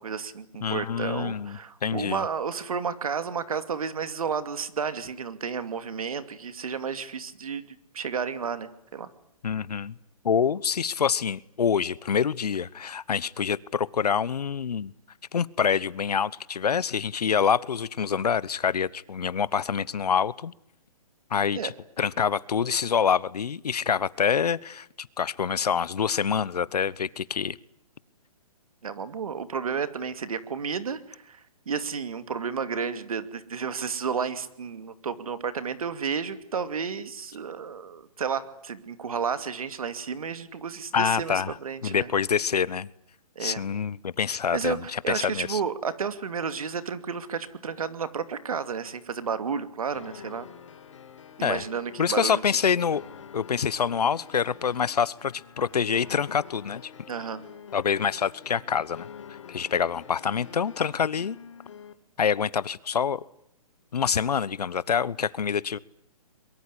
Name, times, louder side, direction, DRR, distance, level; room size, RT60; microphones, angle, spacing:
voice 1, 0.0-7.6 7.9-9.1 21.5-21.7 28.8-31.4 31.7-42.1 43.4-43.6 44.5-50.5 51.4-52.4 57.1-57.4, right 6 dB, 65° right, 11 dB, 2.6 m, -32 dB
voice 2, 0.6-2.3 9.4-10.0 10.2-14.9 15.3-20.5 21.3-27.6 40.9-41.5 41.8-42.9 43.4-45.6 51.4-51.6 52.0-53.0 53.3-56.9 57.7-59.1 59.5-61.4 62.2-63.2 63.9-65.8, left 7 dB, 90° left, 21 dB, 1.1 m, -26 dB
sound 1, 49.9-61.9, left 7 dB, 50° left, 2.5 m, -47 dB
23.0 x 22.5 x 10.0 m, 0.73 s
hypercardioid pair, 175°, 20 cm